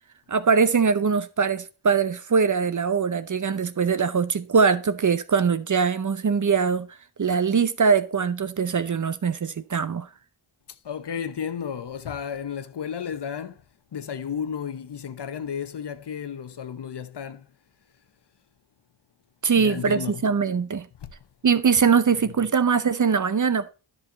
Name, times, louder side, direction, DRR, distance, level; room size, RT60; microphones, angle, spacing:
voice 1, 0.3-6.9 7.2-10.1 19.4-20.9 21.4-23.7, right 5 dB, 40° right, 0.7 m, -22 dB
voice 2, 10.7-13.6 13.9-17.5 19.6-20.2 21.0-21.1, left 7 dB, 60° left, 0.8 m, -33 dB
10.5 x 5.5 x 4.0 m
cardioid pair, 55°, 47 cm